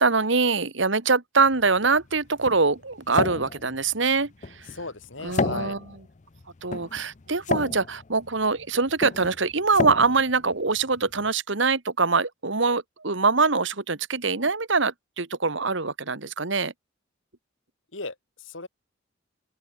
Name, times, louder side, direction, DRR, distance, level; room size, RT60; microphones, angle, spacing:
voice 1, 0.0-4.7 5.2-5.8 6.6-16.7, right 4 dB, 65° right, 1.8 m, -24 dB
sound 1, 1.5-11.3, left 3 dB, 35° left, 0.6 m, -33 dB
voice 2, 4.7-5.8 17.9-18.7, left 3 dB, 70° left, 3.7 m, -36 dB
open air
head